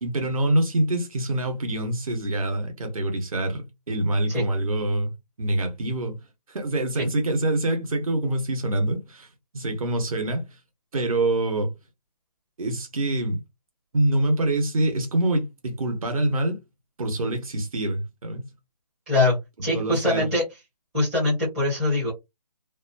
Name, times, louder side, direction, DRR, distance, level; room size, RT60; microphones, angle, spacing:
voice 1, 0.0-5.1 5.4-6.2 6.5-9.3 9.5-10.5 10.9-11.7 12.6-13.4 13.9-16.6 17.0-18.5 19.7-20.3, right 1 dB, 55° right, 1.1 m, -25 dB
voice 2, 19.1-20.4 20.9-22.1, left 2 dB, 5° right, 0.5 m, -23 dB
2.6 x 2.2 x 2.5 m
figure-of-eight pair, 160°, 21 cm